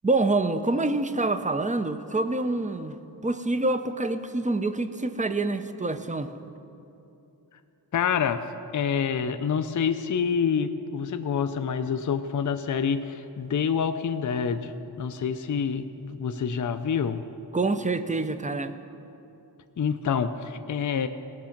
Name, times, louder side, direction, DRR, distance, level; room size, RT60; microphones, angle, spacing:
voice 1, 0.0-6.3 17.5-18.7, right 2 dB, 20° right, 10 dB, 0.5 m, -26 dB
voice 2, 7.9-8.4 8.7-17.2 19.8-21.1, left 7 dB, 50° left, 9 dB, 0.5 m, -27 dB
17.5 x 6.1 x 5.8 m, 2.8 s
wide cardioid pair, 80°, 41 cm